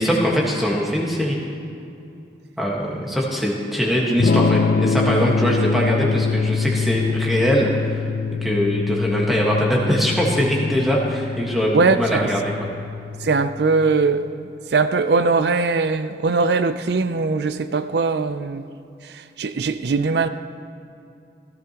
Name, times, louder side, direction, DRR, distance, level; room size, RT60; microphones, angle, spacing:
voice 1, 0.0-1.4 2.6-7.9 8.4-12.4, equal, ahead, -4 dB, 1.5 m, -21 dB
Electric guitar / Strum, 4.2-14.0, left 5 dB, 50° left, 0.3 m, -24 dB
voice 2, 11.7-12.3 13.2-18.7 19.0-20.3, right 4 dB, 65° right, 11 dB, 0.5 m, -21 dB
16.5 x 14.0 x 3.0 m, 2.6 s
head